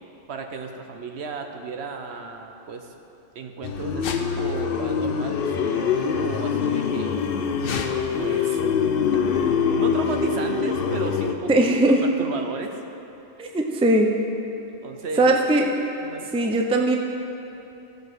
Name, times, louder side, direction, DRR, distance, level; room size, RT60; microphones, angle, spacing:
voice 1, 0.3-2.9 3.3-7.5 8.2-8.6 9.8-12.7 14.8-15.4 16.0-16.3, right 4 dB, 65° right, 5 dB, 1.0 m, -34 dB
sound 1, 3.6-11.3, left 6 dB, 55° left, 0.8 m, -24 dB
voice 2, 11.5-12.0 13.4-14.1 15.2-15.6 16.3-17.0, right 1 dB, 5° right, 2 dB, 0.5 m, -19 dB
15.0 x 5.1 x 6.2 m, 2.9 s
omnidirectional pair, 1.2 m